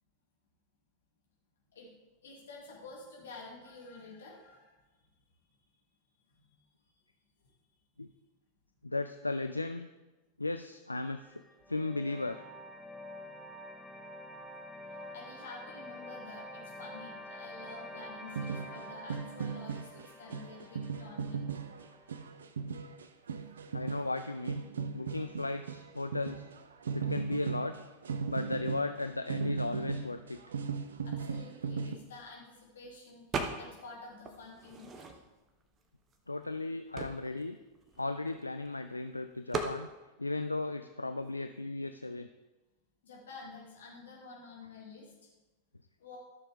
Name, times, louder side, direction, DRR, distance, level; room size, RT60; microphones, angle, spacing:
voice 1, 2.2-4.8 6.3-6.5 15.1-21.5 31.0-35.1 43.0-45.1 46.0-46.2, left 3 dB, 65° left, -2 dB, 2.7 m, -50 dB
voice 2, 8.8-9.9 10.4-11.4 11.7-12.4 23.7-24.6 24.9-26.5 26.9-27.7 28.3-30.4 36.3-37.6 38.0-39.9 40.2-42.3, left 2 dB, 85° left, 9 dB, 0.3 m, -36 dB
sound 1, 11.2-22.3, left 1 dB, 5° right, 0.9 m, -48 dB
sound 2, 18.4-32.0, right 5 dB, 65° right, 0.6 m, -37 dB
sound 3, 33.3-33.9 34.2-35.5 36.1-36.2 36.4-38.7 39.5-39.8, right 4 dB, 25° right, 1.1 m, -38 dB
13.0 x 6.9 x 3.7 m, 1.1 s
figure-of-eight pair, 90°, 0 cm